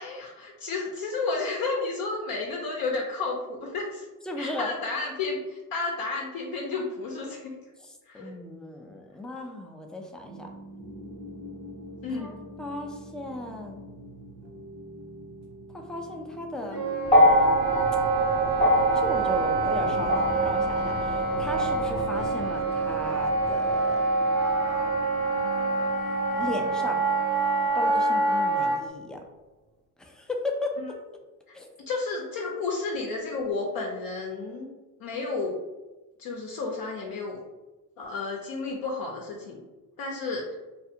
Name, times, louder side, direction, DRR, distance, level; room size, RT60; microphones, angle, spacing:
voice 1, 0.0-4.1 4.4-7.5 8.1-8.3 12.0-12.4 30.8-30.9 31.9-34.7 35.0-35.6 36.2-37.4 38.0-39.6 40.0-40.4, left 3 dB, 60° left, -1 dB, 0.6 m, -32 dB
voice 2, 4.3-4.7 8.1-10.5 12.1-13.8 15.9-16.8 18.9-24.0 26.4-27.0 27.7-29.2 30.0-30.8 31.5-31.7, left 1 dB, ahead, 2 dB, 0.3 m, -36 dB
sound 1, 10.3-27.7, equal, 40° right, 0.7 m, -43 dB
Wind instrument woodwind instrument, 16.7-28.8, right 3 dB, 75° right, 1.1 m, -26 dB
sound 2, 17.0-25.4 26.5-26.6, equal, 25° left, 0.9 m, -26 dB
2.4 x 2.4 x 2.7 m, 1.1 s
supercardioid pair, 70°, 40 cm